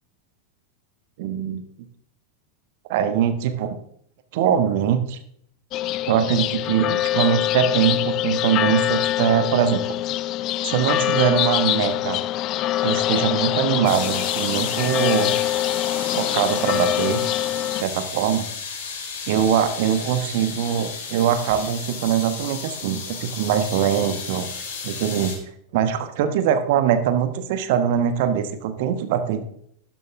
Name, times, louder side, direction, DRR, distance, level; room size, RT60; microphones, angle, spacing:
voice 1, 1.2-1.6 2.9-3.8 4.3-5.2 6.0-9.8 10.6-12.2 12.8-15.3 16.1-17.2 17.8-18.5 19.3-24.5 24.8-25.3 25.7-29.4, right 9 dB, 50° right, 9 dB, 1.2 m, -22 dB
sound 1, 5.7-17.8, left 14 dB, 35° left, 0.4 m, -24 dB
sound 2, 13.8-25.4, left 5 dB, 55° left, 3.9 m, -33 dB
12.5 x 10.5 x 3.5 m, 0.67 s
figure-of-eight pair, 90°, 0 cm